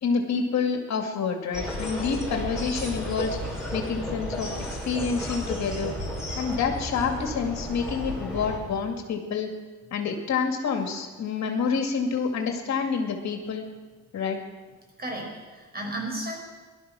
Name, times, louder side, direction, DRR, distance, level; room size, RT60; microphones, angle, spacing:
voice 1, 0.0-3.4 3.7-5.9 6.4-9.5 9.9-13.6 14.1-14.4, left 5 dB, 65° left, 4 dB, 2.3 m, -28 dB
sound 1, 1.5-8.6, equal, ahead, 6.2 m, -33 dB
voice 2, 15.0-16.4, right 1 dB, 30° right, 1 dB, 5.4 m, -33 dB
18.0 x 12.0 x 6.3 m, 1.3 s
cardioid pair, 90°, 30 cm